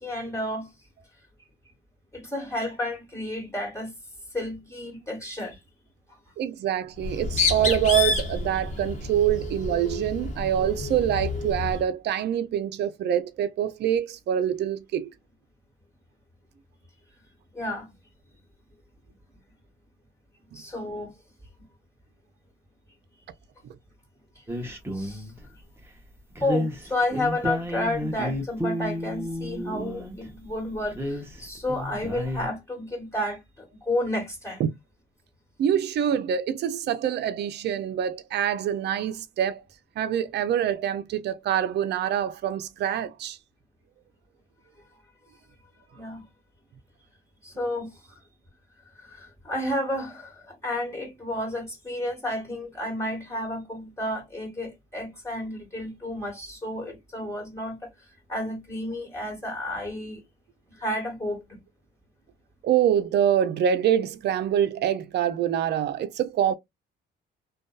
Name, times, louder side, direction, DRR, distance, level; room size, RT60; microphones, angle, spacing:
voice 1, 0.0-0.7 2.1-3.9 4.3-5.6 17.5-17.9 20.5-21.2 24.3-25.3 26.4-34.6 45.9-46.2 47.4-48.2 48.9-57.9 58.3-60.2 60.7-61.6, left 1 dB, 15° left, 1.4 m, -31 dB
voice 2, 6.4-15.1 34.6-34.7 35.6-39.6 40.0-43.4 62.6-66.5, right 10 dB, 60° right, 0.4 m, -25 dB
Bird, 7.0-11.8, left 4 dB, 35° left, 1.1 m, -29 dB
sound 1, 24.5-25.4 26.4-30.3 30.8-32.5, equal, 10° right, 0.8 m, -31 dB
2.5 x 2.2 x 2.3 m
cardioid pair, 90°, 20 cm